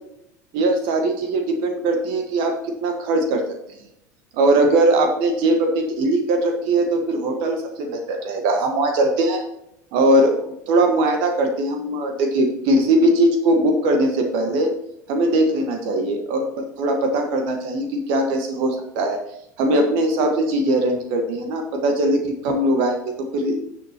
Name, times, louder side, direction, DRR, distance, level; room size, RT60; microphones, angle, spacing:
voice 1, 0.5-3.4 4.3-9.4 9.9-10.3 10.7-14.7 15.1-19.2 19.6-23.6, right 1 dB, 55° right, 4 dB, 1.5 m, -20 dB
10.5 x 7.6 x 3.0 m, 0.80 s
hypercardioid pair, 80°, 10 cm